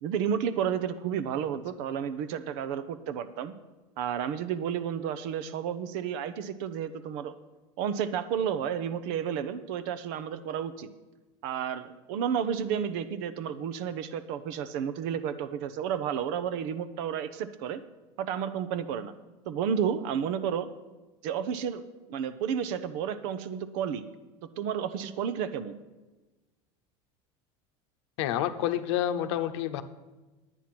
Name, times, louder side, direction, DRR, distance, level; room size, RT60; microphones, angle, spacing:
voice 1, 0.0-3.5 4.0-7.3 7.8-10.9 11.4-17.8 18.2-19.1 19.5-20.7 21.2-21.8 22.1-24.0 24.6-25.8, right 8 dB, 70° right, 13 dB, 0.8 m, -31 dB
voice 2, 28.2-29.8, left 11 dB, 80° left, 10 dB, 0.8 m, -28 dB
10.0 x 9.1 x 6.0 m, 1.2 s
supercardioid pair, 110°, 15 cm